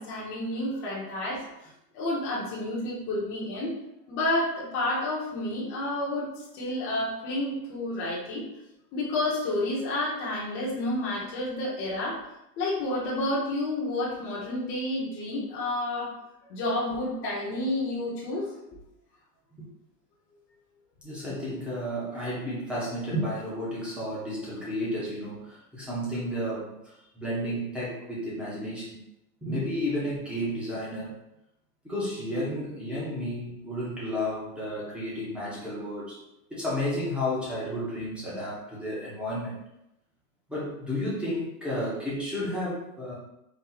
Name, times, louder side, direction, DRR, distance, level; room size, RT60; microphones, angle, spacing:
voice 1, 0.0-1.7 1.9-3.7 4.1-8.4 8.9-12.2 12.6-16.2 16.5-18.5, left 1 dB, 25° left, -6 dB, 0.9 m, -30 dB
voice 2, 21.0-29.0 29.4-31.1 31.8-36.2 36.5-39.5 40.5-43.2, equal, ahead, -8 dB, 0.9 m, -32 dB
4.5 x 2.3 x 3.9 m, 0.84 s
hypercardioid pair, 145°, 48 cm